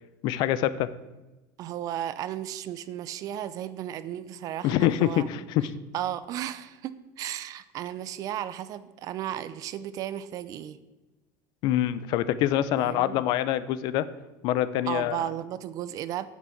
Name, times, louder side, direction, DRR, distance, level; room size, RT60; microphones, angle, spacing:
voice 1, 0.2-0.9 4.6-5.8 11.6-14.1 14.4-15.2, left 12 dB, 55° left, 15 dB, 0.6 m, -25 dB
voice 2, 1.6-5.3 5.9-10.8 12.8-13.2 14.9-16.3, right 11 dB, 40° right, 15 dB, 0.6 m, -34 dB
9.3 x 6.2 x 8.5 m, 1.1 s
cardioid pair, 160°, 9 cm